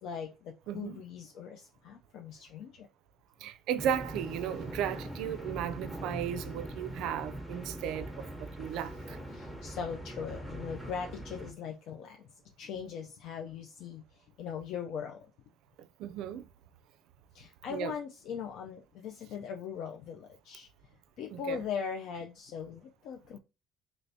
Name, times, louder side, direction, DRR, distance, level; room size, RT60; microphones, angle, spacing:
voice 1, 0.0-2.9 9.3-15.3 17.3-20.7 21.2-23.4, left 7 dB, 65° left, 0.4 m, -40 dB
voice 2, 0.7-1.0 3.4-9.2 15.8-16.5 17.7-17.9 21.3-21.6, right 9 dB, 70° right, 0.3 m, -35 dB
sound 1, 3.8-11.5, right 1 dB, 5° right, 0.8 m, -42 dB
3.3 x 2.9 x 2.6 m
cardioid pair, 130°, 0 cm